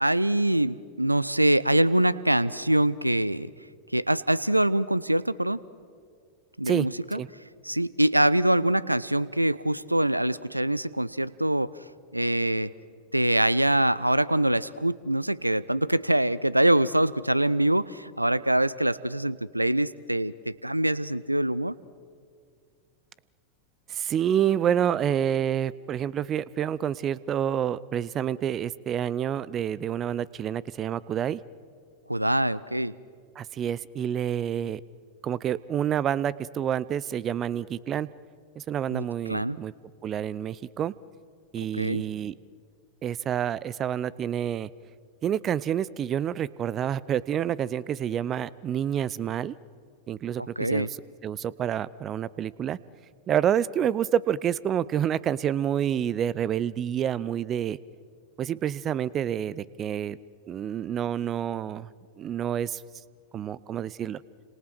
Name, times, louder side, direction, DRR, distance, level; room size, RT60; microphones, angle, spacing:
voice 1, 0.0-3.5 3.9-5.6 6.6-7.2 7.6-11.7 12.1-12.7 13.1-21.8 32.1-32.9 38.9-39.6 41.8-42.0 50.4-50.9, right 1 dB, 85° right, 20 dB, 0.6 m, -24 dB
voice 2, 6.7-7.3 23.9-31.4 33.4-34.8 35.2-38.1 38.6-39.7 40.0-40.9 41.5-42.3 43.0-44.7 45.2-49.5 50.1-50.9 51.2-52.8 53.3-57.8 58.4-60.2 60.5-61.9 62.2-62.8 63.3-64.2, right 9 dB, 30° right, 21 dB, 0.7 m, -28 dB
30.0 x 27.0 x 6.1 m, 2.1 s
figure-of-eight pair, 90°, 0 cm